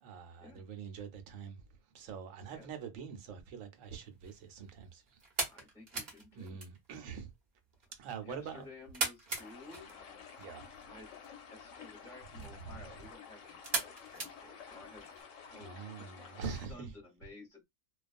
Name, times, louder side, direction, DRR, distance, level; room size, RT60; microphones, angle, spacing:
voice 1, 0.0-1.6 1.9-5.2 6.3-7.3 8.0-8.7 10.4-10.9 12.6-12.8 15.6-16.9, right 6 dB, 75° right, 1.0 m, -44 dB
sound 1, 3.8-15.2, right 3 dB, 40° right, 0.8 m, -42 dB
voice 2, 5.5-6.6 8.2-10.5 10.8-11.1 11.5-17.6, left 2 dB, 5° left, 0.8 m, -54 dB
sound 2, 9.3-16.7, left 6 dB, 80° left, 1.0 m, -52 dB
2.3 x 2.3 x 2.4 m
omnidirectional pair, 1.4 m